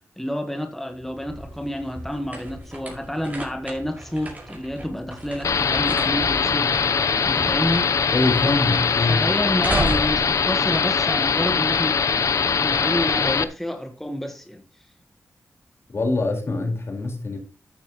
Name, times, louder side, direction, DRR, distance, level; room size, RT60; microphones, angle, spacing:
voice 1, 0.2-6.7 7.2-7.8 9.1-12.0 12.6-14.6, equal, 5° left, 1.4 m, -29 dB
sound 1, 0.9-11.6, right 1 dB, 30° right, 5.5 m, -34 dB
sound 2, 5.4-13.4, left 6 dB, 70° left, 0.8 m, -22 dB
voice 2, 8.1-9.3 15.9-17.4, left 2 dB, 50° left, 4.5 m, -23 dB
13.5 x 9.6 x 3.1 m
wide cardioid pair, 100°, 6 cm